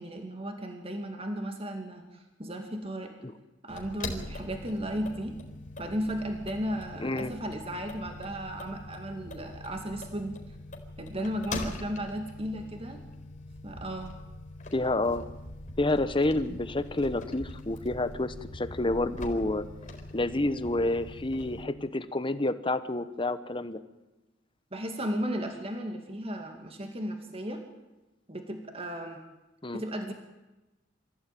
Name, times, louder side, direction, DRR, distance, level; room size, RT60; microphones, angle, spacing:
voice 1, 0.0-3.1 3.6-5.4 5.8-10.4 11.0-13.0 13.6-14.1 24.7-27.6 28.3-29.2 29.7-30.1, equal, 30° right, 4 dB, 2.3 m, -35 dB
sound 1, 3.7-21.6, left 2 dB, 40° left, 4.3 m, -42 dB
voice 2, 7.0-7.3 14.7-15.3 15.8-19.6 20.1-23.8 29.6-29.8, left 2 dB, 25° left, 12 dB, 1.1 m, -29 dB
25.5 x 15.5 x 9.2 m, 1.1 s
head